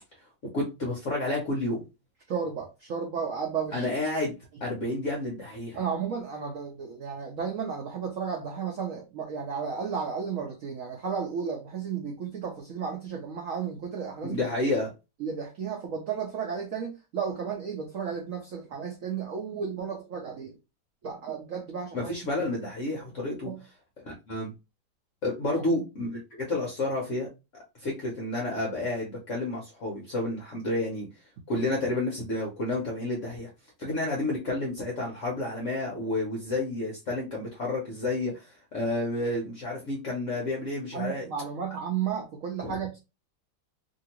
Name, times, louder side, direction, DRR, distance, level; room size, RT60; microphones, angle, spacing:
voice 1, 0.5-1.8 3.7-4.3 4.6-5.8 14.2-14.9 21.9-23.5 24.0-24.5 25.2-27.3 27.8-31.1 31.5-33.5 33.8-41.3 42.6-42.9, left 2 dB, 60° left, 0.8 m, -30 dB
voice 2, 2.3-3.9 5.7-14.4 15.2-20.6 21.0-22.2 23.4-23.6 25.5-25.6 40.9-43.0, right 6 dB, 80° right, 0.7 m, -33 dB
2.8 x 2.7 x 2.9 m
omnidirectional pair, 2.1 m